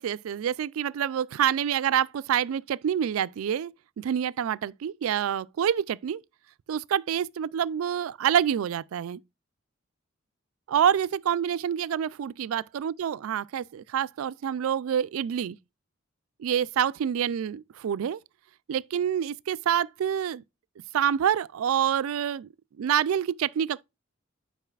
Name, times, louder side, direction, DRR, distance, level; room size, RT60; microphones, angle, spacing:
voice 1, 0.0-6.2 6.7-9.2 10.7-15.6 16.4-18.2 18.7-20.4 20.9-22.5 22.8-23.8, right 9 dB, 75° right, 0.3 m, -27 dB
9.0 x 4.7 x 2.3 m
head